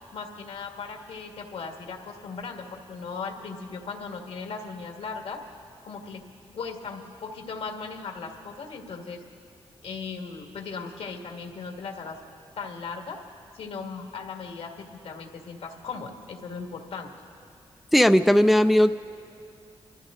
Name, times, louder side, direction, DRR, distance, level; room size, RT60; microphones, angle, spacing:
voice 1, 0.1-5.4 5.8-6.2 6.5-9.2 9.8-12.2 12.6-13.2 13.5-17.1, left 5 dB, 85° left, 2 dB, 1.7 m, -37 dB
voice 2, 17.9-18.9, equal, ahead, 10 dB, 0.3 m, -17 dB
26.0 x 13.5 x 3.7 m, 2.4 s
cardioid pair, 80°, 10 cm